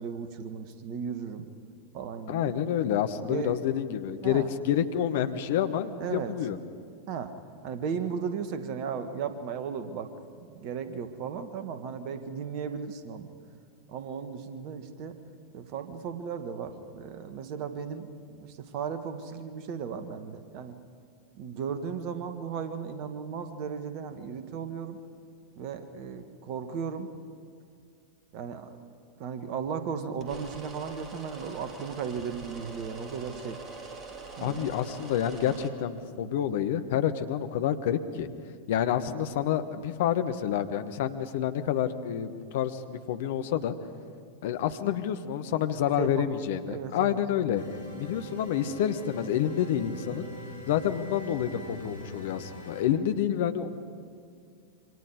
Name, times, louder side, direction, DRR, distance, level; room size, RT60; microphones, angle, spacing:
voice 1, 0.0-1.5 1.9-2.5 3.1-3.6 4.2-4.5 6.0-6.3 7.1-7.3 7.6-10.1 10.4-13.3 13.9-15.2 15.5-20.7 21.3-25.0 25.5-27.1 28.3-28.7 29.2-33.6 34.4-34.6 46.0-46.3 46.7-47.2, right 6 dB, 45° right, 9 dB, 1.6 m, -35 dB
voice 2, 2.3-6.6 34.4-38.3 38.7-43.7 44.4-47.6 48.0-50.3 50.7-53.7, left 10 dB, 55° left, 10 dB, 1.2 m, -28 dB
sound 1, 30.2-35.7, right 3 dB, 25° right, 2.7 m, -44 dB
sound 2, 47.5-52.8, equal, 70° left, 4.1 m, -43 dB
27.0 x 25.0 x 5.0 m, 2.3 s
figure-of-eight pair, 90°, 0 cm